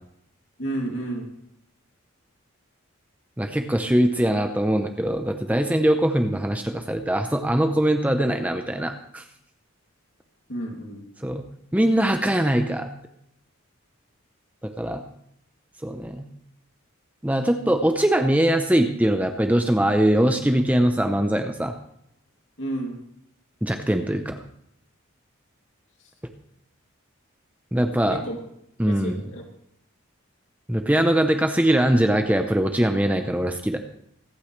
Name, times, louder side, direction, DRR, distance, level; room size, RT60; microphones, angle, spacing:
voice 1, 0.6-1.3 10.5-11.0 22.6-23.0 28.1-28.4 28.9-29.4, right 1 dB, 60° left, 0 dB, 2.7 m, -31 dB
voice 2, 3.4-9.2 11.2-11.4 11.7-12.9 14.6-15.0 15.8-16.3 17.2-21.7 23.6-24.4 27.7-28.2 28.8-29.3 30.7-33.8, right 1 dB, 5° right, 6 dB, 0.7 m, -22 dB
25.0 x 9.0 x 3.3 m, 0.73 s
head